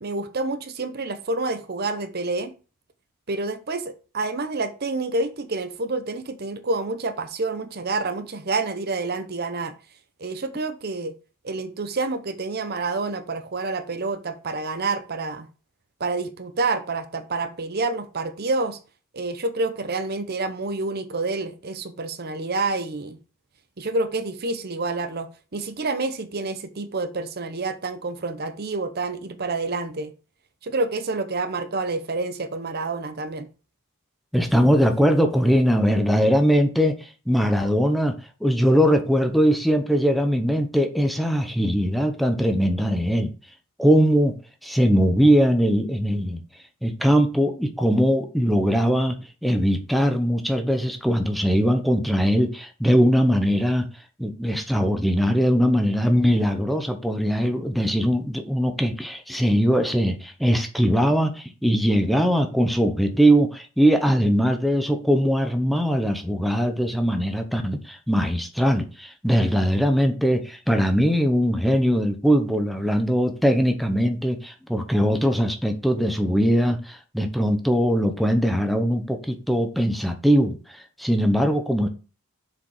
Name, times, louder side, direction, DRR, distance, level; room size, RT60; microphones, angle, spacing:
voice 1, 0.0-2.5 3.3-9.7 10.2-11.1 11.4-15.5 16.0-18.8 19.1-23.2 23.8-30.1 30.6-33.5, right 3 dB, 45° right, 0.8 m, -28 dB
voice 2, 34.3-38.1 38.4-43.3 43.8-44.4 44.6-46.4 46.8-49.2 49.4-53.9 54.2-81.9, equal, ahead, 0.8 m, -21 dB
7.0 x 4.9 x 4.8 m
head